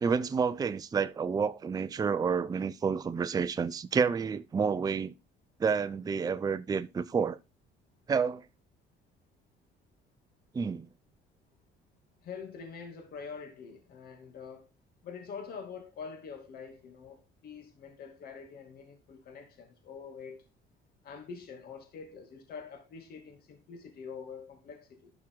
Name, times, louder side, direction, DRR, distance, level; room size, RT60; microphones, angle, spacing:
voice 1, 0.0-5.1 5.6-7.4 8.1-8.4 10.5-10.9, right 6 dB, 20° right, 0.5 m, -29 dB
voice 2, 12.2-14.7 15.0-20.4 21.0-25.1, left 5 dB, 65° left, 2.6 m, -45 dB
12.0 x 6.0 x 3.8 m
cardioid pair, 110°, 17 cm